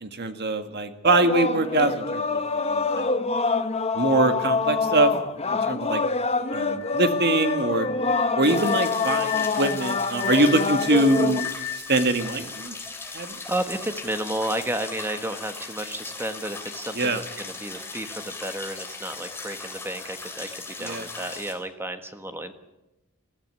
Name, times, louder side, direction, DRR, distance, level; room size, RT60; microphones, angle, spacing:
voice 1, 0.0-3.1 3.9-5.1 5.5-6.0 6.5-7.9 8.4-11.5 11.9-12.7 13.1-13.4 17.0-17.2 20.8-21.0, right 2 dB, 50° right, 8 dB, 1.8 m, -23 dB
sound 1, 1.0-11.4, left 4 dB, 30° left, 1.0 m, -26 dB
sound 2, 6.5-13.4, left 14 dB, 55° left, 4.9 m, -36 dB
sound 3, 8.4-21.5, left 3 dB, 10° left, 3.1 m, -38 dB
voice 2, 13.0-22.5, right 1 dB, 10° right, 8 dB, 1.4 m, -32 dB
20.5 x 14.5 x 9.7 m, 0.97 s
head